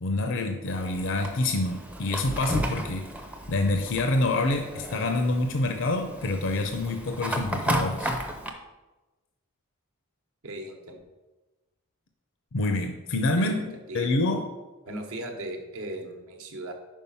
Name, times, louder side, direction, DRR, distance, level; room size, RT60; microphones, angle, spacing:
voice 1, 0.0-3.1 3.5-8.1 12.5-13.6 13.9-14.4, left 2 dB, 55° left, 5 dB, 0.5 m, -27 dB
Fire, 0.7-8.5, right 1 dB, 5° right, 0.5 m, -33 dB
voice 2, 10.4-11.0 13.4-13.6 13.9-14.1 14.9-16.7, right 1 dB, 70° right, 4 dB, 1.0 m, -37 dB
5.4 x 4.9 x 5.5 m, 1.1 s
head